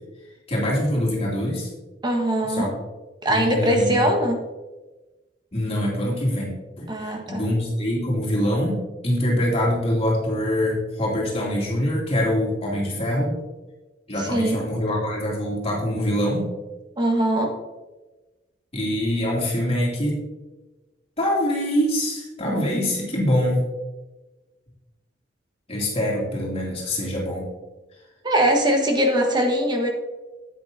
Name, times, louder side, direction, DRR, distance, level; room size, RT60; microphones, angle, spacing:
voice 1, 0.5-1.7 2.5-2.7 3.3-4.1 5.5-13.4 14.1-16.5 18.7-20.2 21.2-23.6 25.7-27.5, equal, 35° left, -4 dB, 2.6 m, -24 dB
voice 2, 2.0-2.7 3.2-4.4 6.9-7.4 14.2-14.6 17.0-17.5 28.2-29.9, right 1 dB, 25° right, 2 dB, 1.4 m, -21 dB
10.0 x 8.6 x 2.7 m, 1.2 s
head